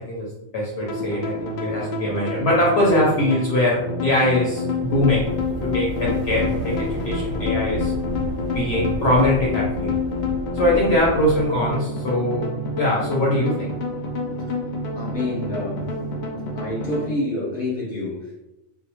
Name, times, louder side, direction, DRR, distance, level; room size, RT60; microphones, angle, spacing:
voice 1, 0.5-5.3 5.6-7.9 8.5-10.0 10.5-13.7, left 1 dB, 65° left, -4 dB, 0.7 m, -22 dB
sound 1, 0.8-17.1, left 3 dB, 80° left, 0.4 m, -28 dB
sound 2, 4.7-11.7, right 1 dB, 55° right, 0.7 m, -32 dB
voice 2, 14.9-15.9 16.5-18.5, left 1 dB, 15° left, -6 dB, 0.8 m, -28 dB
2.2 x 2.1 x 2.8 m, 0.88 s
omnidirectional pair, 1.3 m